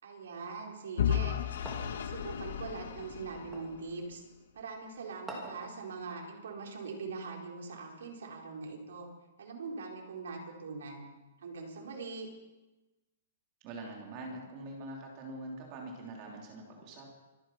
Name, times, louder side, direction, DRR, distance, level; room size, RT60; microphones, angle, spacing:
voice 1, 0.0-1.4 2.1-4.2 4.5-9.1 9.4-11.1 11.4-12.3, right 4 dB, 75° right, 0 dB, 4.3 m, -42 dB
Vehicle / Engine, 1.0-4.0, left 9 dB, 65° left, 1.7 m, -34 dB
sound 1, 1.7-2.1 3.5-3.8 5.3-5.7, right 1 dB, 5° right, 2.4 m, -44 dB
voice 2, 13.6-17.1, right 2 dB, 30° right, 0 dB, 2.9 m, -44 dB
25.0 x 9.7 x 5.9 m, 1.1 s
hypercardioid pair, 170°, 0 cm